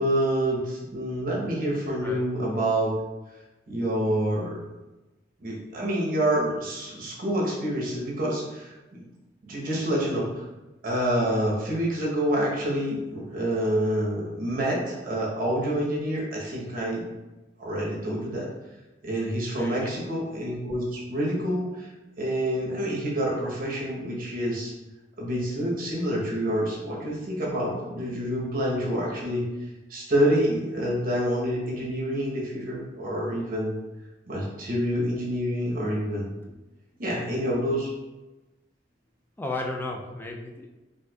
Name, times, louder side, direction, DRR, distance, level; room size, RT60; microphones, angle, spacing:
voice 1, 0.0-2.9 3.7-4.6 5.4-8.7 9.5-10.4 10.8-17.0 17.6-18.5 19.0-21.9 22.2-24.7 25.2-29.4 29.9-33.7 34.3-36.3 37.0-37.9, equal, 50° right, -4 dB, 0.9 m, -27 dB
voice 2, 19.6-19.9 36.5-36.6 39.4-40.7, left 2 dB, 10° left, 1 dB, 0.3 m, -34 dB
4.3 x 2.5 x 2.3 m, 1.1 s
head